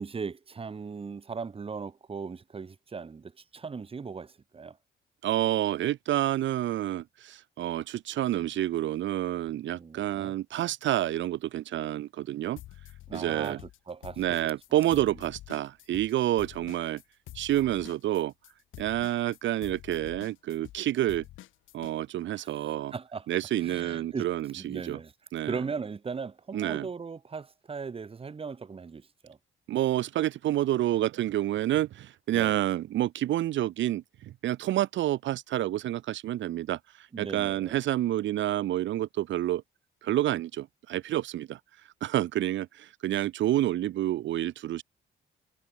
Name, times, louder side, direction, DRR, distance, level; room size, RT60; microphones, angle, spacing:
voice 1, 0.0-4.8 9.7-10.3 13.1-15.1 22.3-23.3 23.6-24.3 24.6-25.1 25.4-29.4 32.3-32.6 37.1-37.8, right 5 dB, 30° right, 1.1 m, -38 dB
voice 2, 5.2-12.6 13.1-13.6 14.2-17.0 17.3-18.3 18.8-21.2 21.7-22.9 23.3-25.0 25.3-25.6 26.5-26.9 29.7-39.6 40.0-41.6 42.0-44.8, right 13 dB, 70° right, 0.7 m, -29 dB
sound 1, 12.6-13.8 14.0-21.9, left 15 dB, 85° left, 1.7 m, -48 dB
cardioid pair, 90°, 20 cm